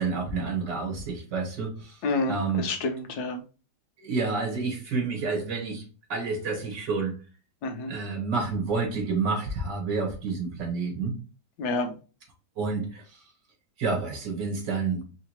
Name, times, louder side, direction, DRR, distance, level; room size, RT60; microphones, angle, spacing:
voice 1, 0.0-2.0 2.3-2.6 4.0-5.8 6.1-7.2 7.9-11.1 12.6-13.2 13.8-15.0, right 4 dB, 80° right, 2.1 m, -29 dB
voice 2, 2.0-3.4 7.6-7.9 11.6-11.9, left 3 dB, 65° left, 1.3 m, -29 dB
4.8 x 3.2 x 3.0 m
omnidirectional pair, 1.9 m